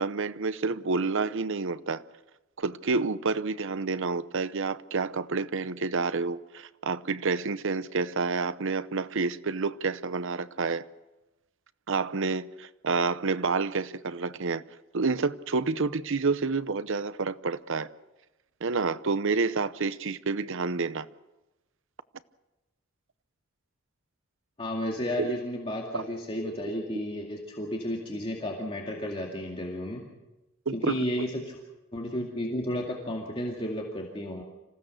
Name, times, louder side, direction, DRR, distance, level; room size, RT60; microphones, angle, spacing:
voice 1, 0.0-2.0 2.6-10.8 11.9-14.6 14.9-17.9 18.6-21.1 25.2-25.3 25.9-26.0 30.7-31.0, right 4 dB, 60° right, 0.8 m, -29 dB
voice 2, 24.6-30.0 30.7-31.6 31.9-34.4, left 1 dB, 25° left, 2.3 m, -32 dB
26.5 x 15.5 x 6.6 m
head